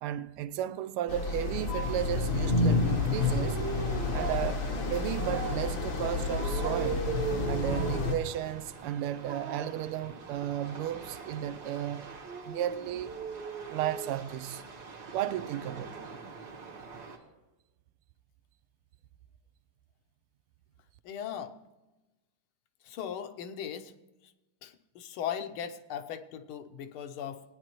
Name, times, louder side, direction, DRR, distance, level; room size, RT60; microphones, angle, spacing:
voice 1, 0.0-3.6 4.1-4.6 4.9-7.1 7.5-12.0 12.4-13.1 13.7-14.6 15.1-16.1, right 11 dB, 85° right, 1.5 m, -34 dB
sound 1, 1.1-8.1, left 3 dB, 55° left, 0.9 m, -30 dB
sound 2, 1.7-17.2, right 5 dB, 50° right, 1.8 m, -40 dB
voice 2, 21.0-21.5 22.8-23.9 24.6-27.4, left 9 dB, 75° left, 1.6 m, -38 dB
18.5 x 9.7 x 3.0 m
omnidirectional pair, 2.4 m